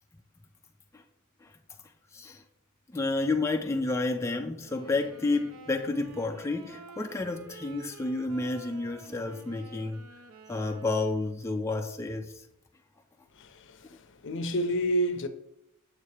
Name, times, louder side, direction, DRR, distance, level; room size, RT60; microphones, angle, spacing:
voice 1, 2.1-2.4 2.9-10.0 10.5-12.4, left 3 dB, 15° left, 0.3 m, -30 dB
sound 1, 4.6-11.4, right 4 dB, 75° right, 0.6 m, -50 dB
voice 2, 13.3-15.3, equal, 60° left, 0.6 m, -30 dB
7.2 x 2.8 x 4.7 m
head